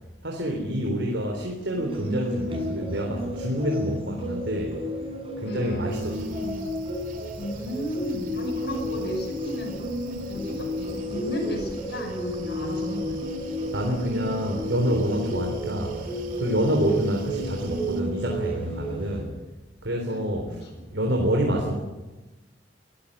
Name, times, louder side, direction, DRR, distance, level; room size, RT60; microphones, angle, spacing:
voice 1, 0.2-4.8 5.4-6.4 13.7-19.3 19.8-21.7, equal, 80° right, 1 dB, 3.8 m, -27 dB
sound 1, 1.8-19.2, equal, 30° right, 6.5 m, -32 dB
voice 2, 5.4-6.6 7.4-9.8 10.3-13.2 20.1-20.7, equal, 65° left, 1 dB, 6.1 m, -34 dB
sound 2, 5.9-18.0, right 2 dB, 50° right, 2.8 m, -44 dB
23.0 x 14.5 x 9.8 m, 1.1 s
head